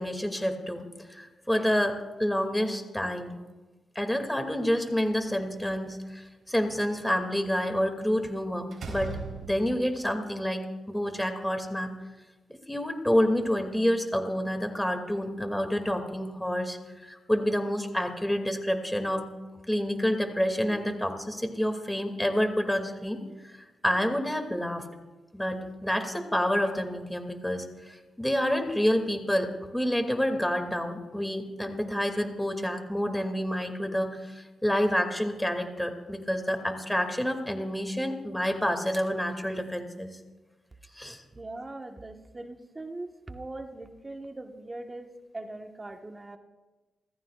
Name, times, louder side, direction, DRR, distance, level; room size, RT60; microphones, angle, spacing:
voice 1, 0.0-3.4 3.9-9.2 9.4-10.6 10.9-11.9 12.7-19.2 19.7-23.6 23.8-24.9 25.3-40.2 40.9-41.2, equal, 5° left, 5 dB, 2.6 m, -28 dB
Slam, 4.9-5.9 8.0-8.3 8.7-9.9, right 4 dB, 70° right, 3.9 m, -40 dB
voice 2, 41.3-46.4, right 2 dB, 30° right, 4 dB, 1.5 m, -41 dB
29.0 x 15.0 x 2.5 m, 1.2 s
cardioid pair, 55°, 0 cm